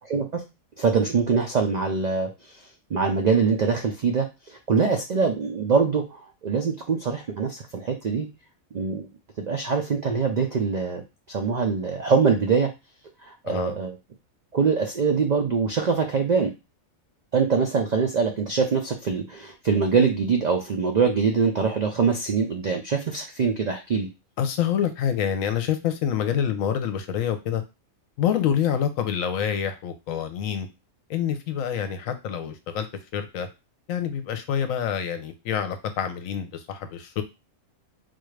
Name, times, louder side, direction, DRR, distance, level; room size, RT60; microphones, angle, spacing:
voice 1, 0.1-0.4 0.8-8.3 8.7-9.1 9.4-11.0 11.3-12.7 13.2-14.0 14.5-16.5 17.3-24.1, right 5 dB, 85° right, 4 dB, 0.3 m, -23 dB
voice 2, 24.4-27.6 28.2-30.7 31.1-32.9 33.1-33.5 33.9-37.2, left 8 dB, 80° left, 9 dB, 1.0 m, -26 dB
3.9 x 2.4 x 3.2 m, 0.26 s
omnidirectional pair, 1.4 m